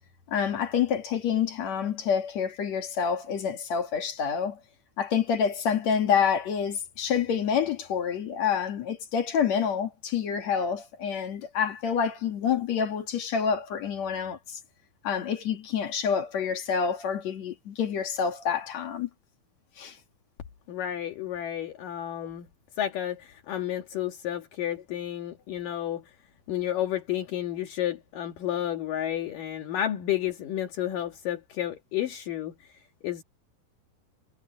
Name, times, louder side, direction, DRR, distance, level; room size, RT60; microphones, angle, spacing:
voice 1, 0.3-4.6 5.0-14.6 15.0-19.1 19.8-20.0, left 7 dB, 55° left, 2.9 m, -27 dB
voice 2, 20.7-22.5 22.8-26.0 26.5-33.2, left 11 dB, 70° left, 3.4 m, -31 dB
omnidirectional pair, 4.1 m